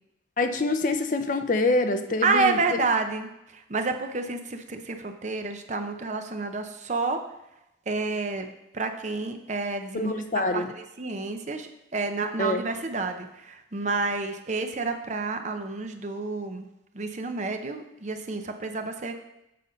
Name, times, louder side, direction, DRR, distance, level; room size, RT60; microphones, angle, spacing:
voice 1, 0.4-2.8 9.9-10.7 12.4-12.6, left 2 dB, 45° left, 8 dB, 0.6 m, -25 dB
voice 2, 2.2-7.2 7.9-8.5 8.7-16.7 16.9-19.1, right 3 dB, 40° right, 6 dB, 0.7 m, -29 dB
7.6 x 5.5 x 5.1 m, 0.88 s
head